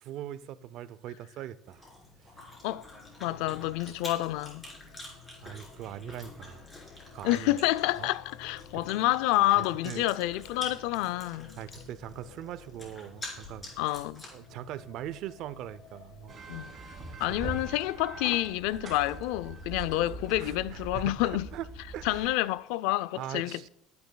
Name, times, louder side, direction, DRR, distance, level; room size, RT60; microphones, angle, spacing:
voice 1, 0.0-1.9 2.2-2.4 5.1-6.6 7.1-7.6 8.0-8.1 8.7-8.8 9.6-10.1 11.6-13.8 14.3-16.3 16.6-17.2 17.4-17.6 20.4-21.2 21.5-21.7 21.9-22.3 23.2-23.7, right 12 dB, 55° right, 0.5 m, -41 dB
Chewing mastication, 1.6-14.5, left 2 dB, 15° left, 3.7 m, -47 dB
sound 1, 2.3-16.4, left 6 dB, 60° left, 1.3 m, -53 dB
voice 2, 3.2-4.6 7.2-11.6 13.8-14.2 16.5-16.7 17.2-21.5 22.0-23.7, left 16 dB, 85° left, 0.3 m, -28 dB
sound 2, 16.3-22.3, right 2 dB, 25° right, 3.3 m, -42 dB
21.5 x 9.4 x 2.2 m
cardioid pair, 155°, 0 cm